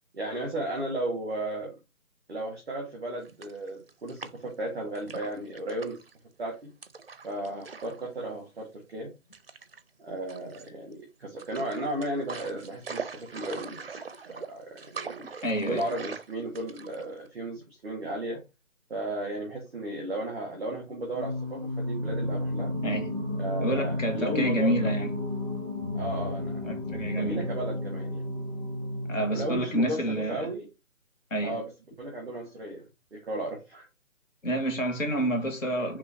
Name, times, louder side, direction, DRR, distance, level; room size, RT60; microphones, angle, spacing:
voice 1, 0.1-1.8 2.3-6.0 6.4-6.7 7.2-9.1 10.0-13.9 14.3-15.3 15.7-18.4 18.9-22.7 23.4-24.9 25.9-28.2 29.3-30.7 31.4-31.7 32.0-33.9, right 1 dB, 5° right, 0.7 m, -35 dB
sound 1, 3.2-4.6 5.0-6.1 6.8-8.0 8.3-8.5 9.3-9.8 10.3-10.9 11.4-17.3, right 5 dB, 45° right, 0.4 m, -42 dB
voice 2, 15.4-15.8 22.8-23.1 23.6-25.1 26.6-27.5 29.1-30.5 31.3-31.6 34.4-36.0, right 1 dB, 65° left, 1.8 m, -29 dB
Singing, 21.1-30.0, left 1 dB, 20° left, 1.5 m, -32 dB
3.9 x 3.1 x 4.1 m
figure-of-eight pair, 165°, 41 cm